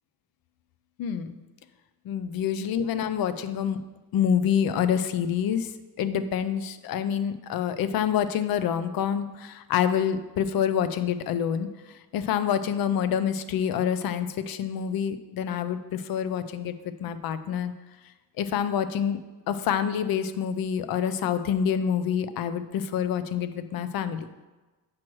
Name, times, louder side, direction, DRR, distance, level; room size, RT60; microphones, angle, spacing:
voice 1, 1.0-1.4 2.0-3.8 4.1-5.7 6.0-17.7 18.4-19.2 19.5-24.2, left 8 dB, 60° left, 11 dB, 0.5 m, -27 dB
7.6 x 3.0 x 6.1 m, 1.2 s
cardioid pair, 180°, 42 cm